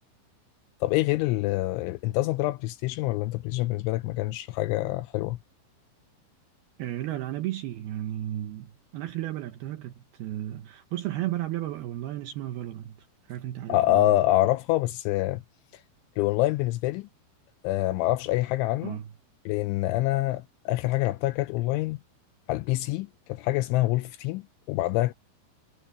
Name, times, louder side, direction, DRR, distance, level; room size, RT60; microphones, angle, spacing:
voice 1, 0.8-5.4 13.7-15.4 15.7-15.8 16.2-17.1 17.6-19.0 19.5-22.0 22.5-25.1, left 16 dB, 85° left, 2.8 m, -26 dB
voice 2, 6.8-8.7 8.9-13.0 13.3-14.1 18.8-19.1, right 13 dB, 90° right, 2.2 m, -33 dB
omnidirectional pair, 5.9 m